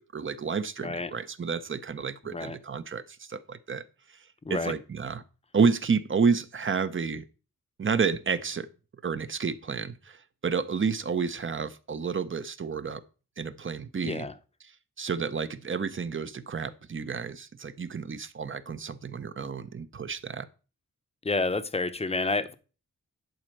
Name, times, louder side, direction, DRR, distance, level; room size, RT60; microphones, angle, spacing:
voice 1, 0.0-3.8 4.1-4.2 4.5-5.2 5.5-7.2 7.8-8.7 9.0-13.0 13.4-14.3 15.0-20.5, right 5 dB, 40° right, 0.7 m, -30 dB
voice 2, 2.3-2.6 4.4-4.7 14.0-14.3 21.2-22.5, left 3 dB, 20° left, 0.7 m, -29 dB
11.0 x 4.4 x 6.3 m
wide cardioid pair, 145°, 32 cm